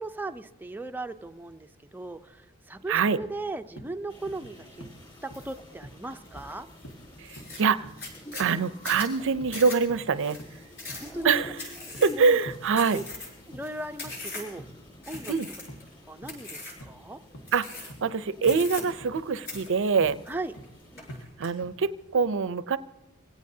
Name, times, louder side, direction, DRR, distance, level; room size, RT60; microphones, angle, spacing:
voice 1, 0.0-5.0 5.2-6.7 11.0-11.3 12.1-12.4 12.9-13.0 13.5-14.6 15.1-15.3 16.1-17.2 20.3-20.5, right 2 dB, 10° right, 7 dB, 0.5 m, -37 dB
sound 1, 3.2-3.4 3.8-3.9 4.3-4.5 4.8-5.0 5.3-5.5 5.8-6.0 6.4-6.5 6.8-7.0 7.4-7.6 7.8-8.0 8.4-8.6 8.9-9.1 9.4-9.6 9.9-10.0 10.4-10.6 10.9-11.0 11.4-12.1 12.5-12.6 13.0-13.2 13.5-13.7 14.0-14.2 14.6-14.8 15.1-15.3 15.7-15.8 16.2-16.4 16.8-16.9 17.3-17.6 17.9-18.1 18.5-18.6 19.0-19.2 19.5-19.7 20.0-20.2 20.6-20.8 21.1-21.2 21.6-21.8, equal, 80° left, 1.9 m, -45 dB
sound 2, 4.1-21.2, left 1 dB, 20° left, 5.4 m, -50 dB
sound 3, 5.3-5.6 6.0-6.5 6.9-7.0 7.2-14.6 15.0-15.9 16.3-16.9 17.5-18.1 18.4-19.2 19.5-20.6 21.0-21.5, left 2 dB, 50° left, 7.6 m, -40 dB
voice 2, 8.3-10.4 11.2-11.5 12.0-13.0 15.3-15.5 17.5-17.7 18.0-20.2 21.4-22.8, right 5 dB, 60° right, 15 dB, 0.5 m, -24 dB
26.5 x 17.0 x 2.7 m, 0.96 s
head